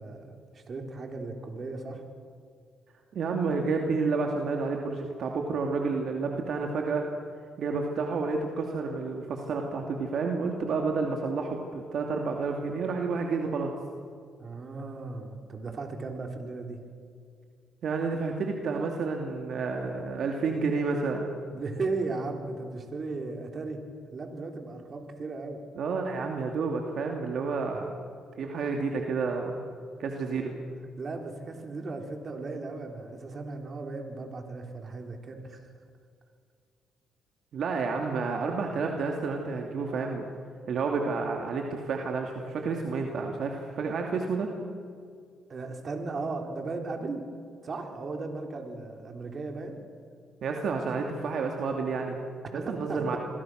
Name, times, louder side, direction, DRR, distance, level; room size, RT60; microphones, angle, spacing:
voice 1, 0.0-2.0 14.4-16.8 21.5-23.8 24.1-25.6 31.0-35.6 45.5-47.2 47.6-49.8 52.5-53.2, right 3 dB, 40° right, 3 dB, 4.0 m, -36 dB
voice 2, 3.1-7.1 7.6-13.7 17.8-21.3 25.8-27.9 28.4-29.6 30.0-30.5 37.5-40.3 40.7-44.5 50.4-52.2 52.5-53.2, right 4 dB, 65° right, 2 dB, 2.6 m, -30 dB
28.0 x 21.5 x 6.5 m, 2.2 s
cardioid pair, 90°, 0 cm